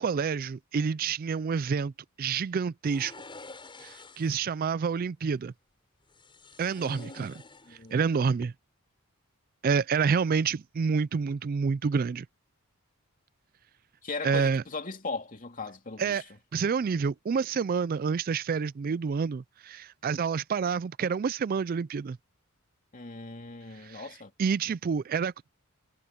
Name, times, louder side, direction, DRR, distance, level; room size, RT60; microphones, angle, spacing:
voice 1, 0.0-1.9 2.2-3.1 3.8-5.5 6.6-7.4 7.7-8.5 9.6-12.3 14.2-14.6 16.0-16.2 16.5-22.2 23.7-24.1 24.4-25.5, right 5 dB, 40° right, 0.3 m, -28 dB
sound 1, 2.8-4.5 6.1-8.0 8.3-8.5, left 3 dB, 20° left, 6.3 m, -49 dB
voice 2, 6.8-7.3 7.7-8.0 14.0-16.2 22.9-24.3, left 3 dB, 40° left, 2.9 m, -38 dB
head